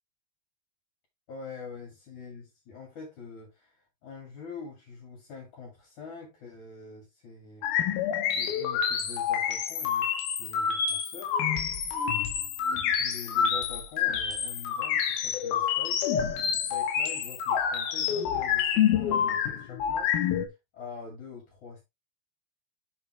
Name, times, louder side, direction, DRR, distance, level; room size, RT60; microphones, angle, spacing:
voice 1, 1.3-7.7 8.3-11.4 12.7-20.2 20.7-21.8, left 4 dB, 50° left, 3.5 m, -45 dB
sound 1, 7.6-20.5, left 8 dB, 70° left, 2.9 m, -28 dB
7.1 x 5.6 x 3.2 m
omnidirectional pair, 4.8 m